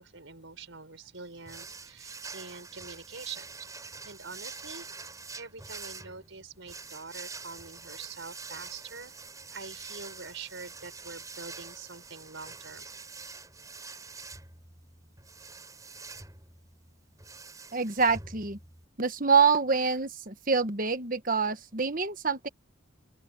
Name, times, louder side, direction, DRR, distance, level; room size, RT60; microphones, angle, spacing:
voice 1, 0.0-3.5 4.0-5.1 5.3-9.2 9.5-13.1, right 4 dB, 65° right, 4.9 m, -45 dB
sound 1, 1.5-18.8, right 4 dB, 15° right, 5.1 m, -45 dB
voice 2, 17.7-18.6 19.0-22.5, right 5 dB, 40° right, 1.4 m, -26 dB
head